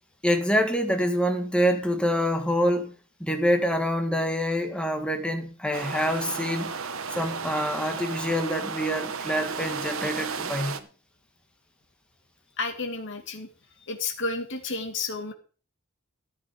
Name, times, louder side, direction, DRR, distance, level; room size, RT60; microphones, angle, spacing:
voice 1, 0.2-2.9 3.2-6.8 7.1-10.8, equal, 5° left, 1.7 m, -26 dB
sound 1, 5.7-10.8, right 5 dB, 65° right, 1.1 m, -34 dB
voice 2, 12.6-13.5 13.8-15.3, left 3 dB, 55° left, 2.4 m, -31 dB
14.0 x 8.3 x 5.3 m
head